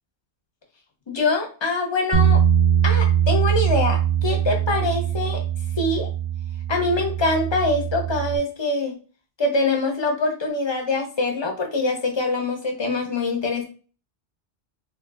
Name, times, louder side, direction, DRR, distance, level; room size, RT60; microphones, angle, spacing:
voice 1, 1.1-2.4 2.8-5.4 5.8-6.1 6.7-9.0 9.4-13.6, left 2 dB, 30° left, 2 dB, 0.6 m, -24 dB
Bass guitar, 2.1-8.4, right 9 dB, 35° right, 0.4 m, -22 dB
3.6 x 2.6 x 2.3 m, 0.37 s
omnidirectional pair, 1.1 m